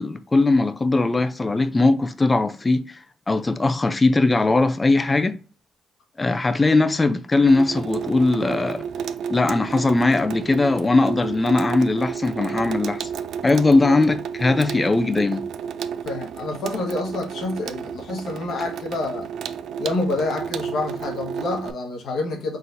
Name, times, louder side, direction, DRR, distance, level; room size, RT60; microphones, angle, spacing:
voice 1, 0.0-3.0 3.3-5.3 6.2-8.8 9.3-13.1 13.4-15.4, left 3 dB, 20° left, 0.5 m, -20 dB
Water tap faucet / Sink (filling or washing), 7.5-21.7, right 7 dB, 70° right, 0.4 m, -32 dB
voice 2, 16.0-19.3 19.8-22.6, left 2 dB, 70° left, 1.3 m, -28 dB
4.0 x 3.8 x 2.6 m
cardioid pair, 90°, 0 cm